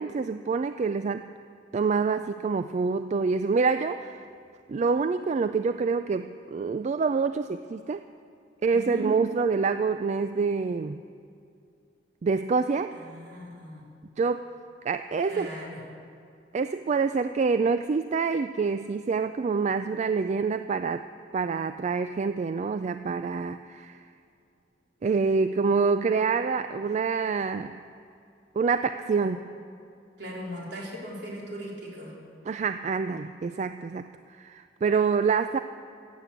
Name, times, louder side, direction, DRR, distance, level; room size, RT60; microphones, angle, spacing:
voice 1, 0.0-1.3 1.7-4.2 4.7-8.0 8.6-11.0 12.2-13.0 14.2-14.5 14.8-15.5 16.5-21.0 21.3-24.0 25.0-27.8 28.6-29.4 32.5-35.6, right 5 dB, 40° right, 10 dB, 0.3 m, -26 dB
voice 2, 8.7-9.1 13.0-13.8 15.3-15.8 29.2-29.3 30.2-32.1, equal, 65° right, -3 dB, 3.5 m, -38 dB
15.5 x 8.4 x 8.1 m, 2.5 s
head